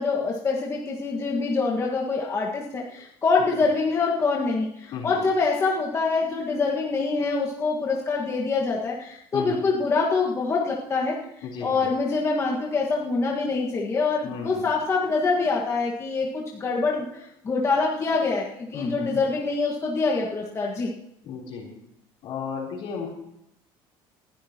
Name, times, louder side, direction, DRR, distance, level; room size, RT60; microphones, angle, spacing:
voice 1, 0.0-11.2 11.6-20.9, left 4 dB, 30° left, -3 dB, 1.7 m, -25 dB
voice 2, 9.3-9.6 11.4-11.9 14.2-14.7 18.7-19.2 21.2-21.7 22.2-23.1, left 6 dB, 65° left, -1 dB, 3.8 m, -34 dB
20.0 x 11.5 x 3.0 m, 0.78 s
cardioid pair, 125°, 10 cm